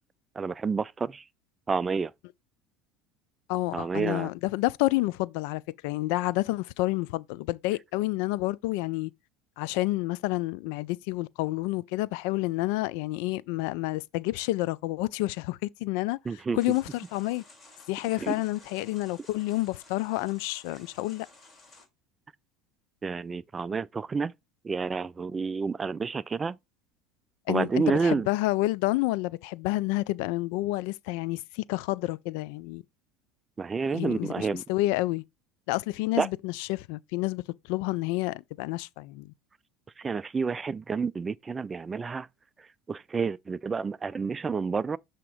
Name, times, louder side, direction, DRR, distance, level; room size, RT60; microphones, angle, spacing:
voice 1, 0.4-1.2 1.7-2.1 3.7-4.3 16.3-16.6 18.2-18.4 23.0-24.3 24.6-26.6 27.5-28.3 33.6-34.6 36.2-36.3 40.0-42.3 42.9-45.0, right 5 dB, 25° right, 0.3 m, -29 dB
voice 2, 3.5-9.1 9.6-17.4 17.9-21.3 27.5-32.8 33.9-35.2 35.7-37.4 37.7-39.3, left 19 dB, 75° left, 0.3 m, -29 dB
sound 1, 16.6-21.9, left 3 dB, 25° left, 3.0 m, -54 dB
7.0 x 2.9 x 4.8 m
supercardioid pair, 95°, 0 cm